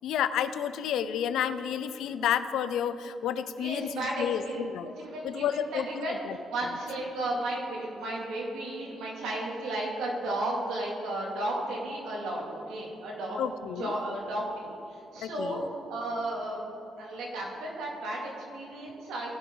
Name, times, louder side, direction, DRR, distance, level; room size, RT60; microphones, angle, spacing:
voice 1, 0.0-4.9 5.2-6.4 13.4-14.0 15.2-15.7, left 9 dB, 80° left, 12 dB, 0.5 m, -31 dB
voice 2, 3.6-6.2 6.5-13.4 13.8-15.6 15.9-16.6 17.0-19.4, right 1 dB, 85° right, -3 dB, 2.6 m, -34 dB
18.5 x 6.1 x 3.9 m, 2.7 s
cardioid pair, 90°, 0 cm